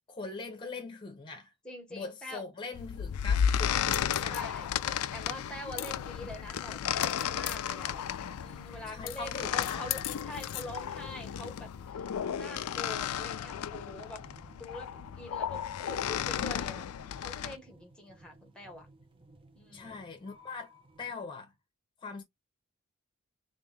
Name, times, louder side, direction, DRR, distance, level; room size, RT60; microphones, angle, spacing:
voice 1, 0.1-1.5 1.9-4.4 4.8-5.1 8.9-9.9 19.7-20.7 21.0-21.5 22.0-22.2, left 4 dB, 20° left, 0.9 m, -42 dB
voice 2, 1.6-2.4 4.3-4.7 5.1-8.0 8.4-14.3 14.5-16.9 17.2-18.9 19.5-20.0, left 1 dB, 5° left, 1.2 m, -44 dB
sound 1, 2.7-17.6, left 9 dB, 80° left, 0.4 m, -33 dB
sound 2, 5.2-21.1, right 1 dB, 25° right, 0.7 m, -57 dB
3.5 x 2.7 x 3.3 m
head